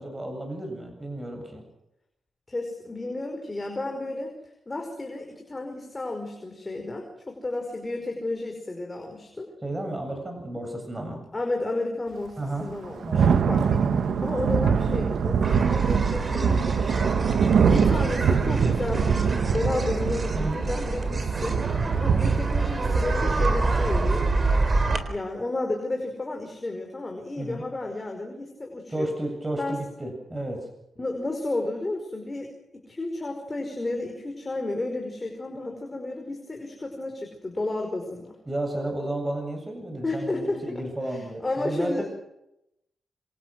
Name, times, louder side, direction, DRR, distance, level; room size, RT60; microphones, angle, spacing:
voice 1, 0.0-1.6 9.6-11.2 12.4-12.7 13.0-13.4 20.3-20.6 27.4-27.6 28.9-30.6 38.5-42.0, right 1 dB, 15° right, 3 dB, 7.6 m, -32 dB
voice 2, 2.5-4.3 4.7-9.5 11.3-17.2 17.4-24.3 25.1-29.1 29.6-29.8 31.0-32.5 32.7-38.4 40.0-40.6 41.1-42.0, left 2 dB, 20° left, 2 dB, 5.2 m, -32 dB
Thunder / Rain, 12.6-25.0, right 6 dB, 70° right, 1.2 m, -24 dB
sound 1, 15.4-25.0, right 3 dB, 35° right, 3.8 m, -27 dB
27.0 x 26.5 x 6.3 m, 0.84 s
wide cardioid pair, 120°, 0 cm